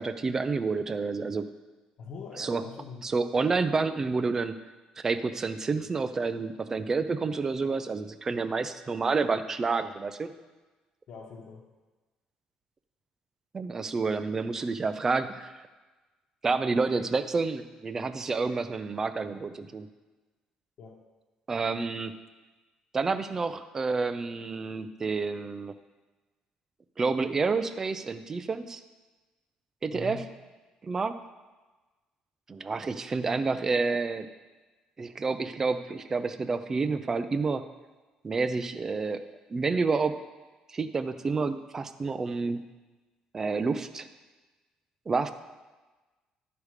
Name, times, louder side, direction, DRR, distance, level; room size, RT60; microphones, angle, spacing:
voice 1, 0.0-1.5 2.4-2.6 3.0-4.6 5.0-10.3 13.5-15.6 16.4-19.9 21.5-22.1 22.9-25.7 27.0-28.8 29.8-30.2 30.8-31.2 32.5-34.3 35.0-37.7 38.2-39.2 39.5-40.2 40.7-42.6 43.3-44.1 45.1-45.3, right 4 dB, 20° right, 11 dB, 0.4 m, -29 dB
voice 2, 2.0-3.1 11.1-11.7 20.8-21.0 29.9-30.2, left 5 dB, 50° left, -4 dB, 1.1 m, -43 dB
12.0 x 4.9 x 4.9 m, 1.2 s
cardioid pair, 165°, 2 cm